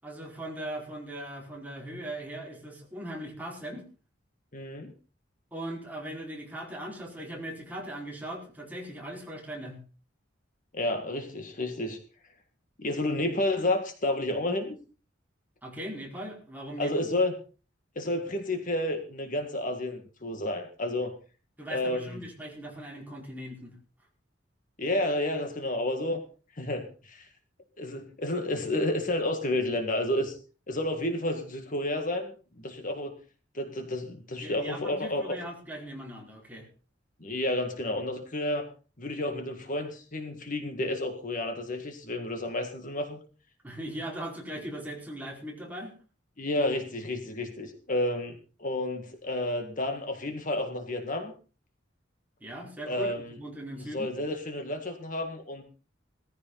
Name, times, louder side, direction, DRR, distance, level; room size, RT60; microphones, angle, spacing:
voice 1, 0.0-3.8 5.5-9.8 15.6-17.1 21.6-23.7 34.4-36.7 43.6-45.9 52.4-54.1, right 1 dB, 10° right, -2 dB, 4.8 m, -39 dB
voice 2, 4.5-4.9 10.7-12.0 12.8-14.8 16.8-17.3 18.0-21.1 21.7-22.2 24.8-26.2 26.5-27.3 27.8-30.4 30.7-33.1 33.5-35.3 37.2-38.7 39.0-43.2 46.4-51.3 52.9-53.4 53.8-55.6, left 1 dB, 45° left, 5 dB, 1.9 m, -31 dB
18.0 x 14.5 x 4.0 m, 0.37 s
head